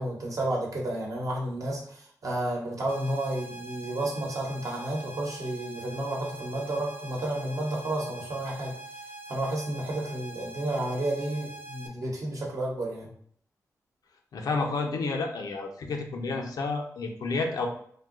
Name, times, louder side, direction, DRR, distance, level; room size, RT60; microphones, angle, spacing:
voice 1, 0.0-8.7 9.3-13.1, right 1 dB, 60° right, -2 dB, 0.9 m, -31 dB
sound 1, 2.9-11.9, right 2 dB, 40° right, 0.4 m, -44 dB
voice 2, 14.3-17.7, left 3 dB, 85° left, 3 dB, 0.5 m, -30 dB
2.7 x 2.2 x 3.6 m, 0.62 s
wide cardioid pair, 105°, 6 cm